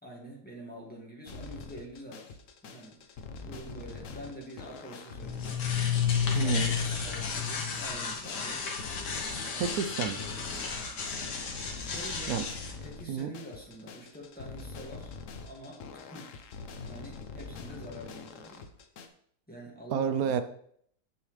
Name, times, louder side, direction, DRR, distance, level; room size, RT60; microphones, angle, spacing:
voice 1, 0.0-3.0 3.4-5.6 6.3-8.7 9.5-9.8 11.8-15.1 15.4-16.3 16.8-18.7 19.5-20.4, equal, 5° left, -3 dB, 1.9 m, -46 dB
sound 1, 1.3-19.1, left 4 dB, 60° left, 1.0 m, -44 dB
sound 2, 5.2-12.7, left 6 dB, 80° left, 1.8 m, -32 dB
voice 2, 6.3-6.7 9.6-10.2 12.3-12.4 13.1-13.3 19.9-20.4, right 7 dB, 70° right, 10 dB, 1.0 m, -29 dB
7.3 x 7.0 x 3.2 m, 0.65 s
omnidirectional pair, 1.8 m